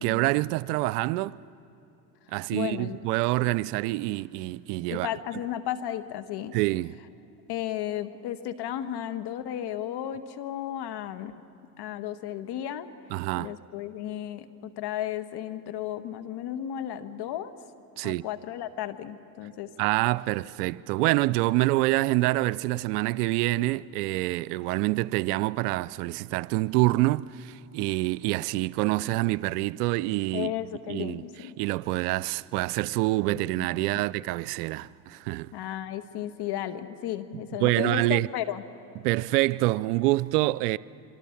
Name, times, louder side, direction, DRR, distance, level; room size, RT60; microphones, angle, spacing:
voice 1, 0.0-1.4 2.3-5.1 6.5-7.0 13.1-13.5 18.0-18.2 19.8-31.2 31.6-35.5 37.6-38.3 39.0-40.8, right 19 dB, 80° right, 0.6 m, -26 dB
voice 2, 2.5-3.0 4.9-6.6 7.5-11.3 11.8-12.9 13.4-17.5 18.0-19.7 30.3-31.6 33.6-33.7 35.5-38.6, left 11 dB, 55° left, 1.5 m, -34 dB
26.0 x 24.0 x 7.2 m
hypercardioid pair, 70°, 46 cm